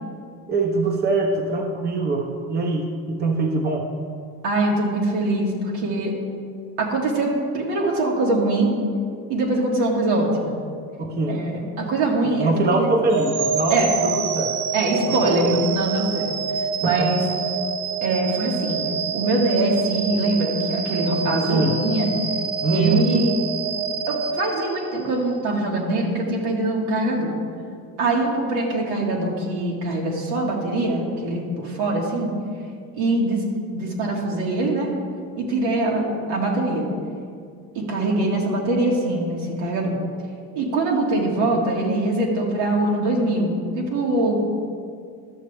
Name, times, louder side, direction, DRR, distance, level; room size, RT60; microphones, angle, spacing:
voice 1, 0.5-3.9 11.0-11.4 12.4-14.5 15.1-15.5 16.8-17.1 21.5-21.8 22.6-23.1, right 3 dB, 25° right, 2 dB, 0.9 m, -23 dB
voice 2, 4.4-6.1 6.8-8.7 9.3-10.6 11.3-12.9 13.7-14.0 14.7-16.3 16.8-17.2 18.0-18.8 19.1-22.1 22.7-23.3 24.1-27.3 28.0-32.3 33.0-33.4 33.7-34.9 35.4-36.8 37.8-39.9 40.5-44.4, right 2 dB, 85° right, -2 dB, 2.0 m, -23 dB
sound 1, 13.1-25.2, right 5 dB, 65° right, 0.7 m, -27 dB
12.0 x 6.8 x 3.4 m, 2.2 s
supercardioid pair, 110°, 38 cm